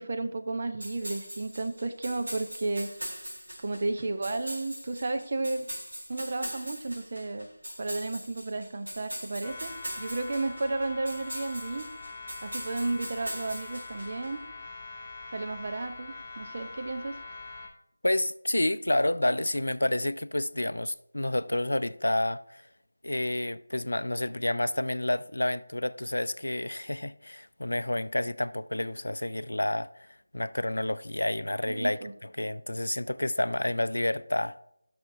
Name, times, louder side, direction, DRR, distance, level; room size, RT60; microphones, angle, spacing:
voice 1, 0.0-2.9 3.6-5.7 6.1-7.5 7.8-9.7 10.0-11.9 12.4-14.4 15.3-17.2 31.6-32.1, right 2 dB, 45° right, 0.9 m, -33 dB
sound 1, 0.8-14.3, equal, 80° right, 3.5 m, -41 dB
sound 2, 9.4-17.7, left 3 dB, 10° left, 1.1 m, -43 dB
voice 2, 18.0-22.7 23.0-30.1 30.3-34.6, left 1 dB, 85° left, 0.4 m, -29 dB
14.0 x 6.2 x 2.8 m
figure-of-eight pair, 165°, 0 cm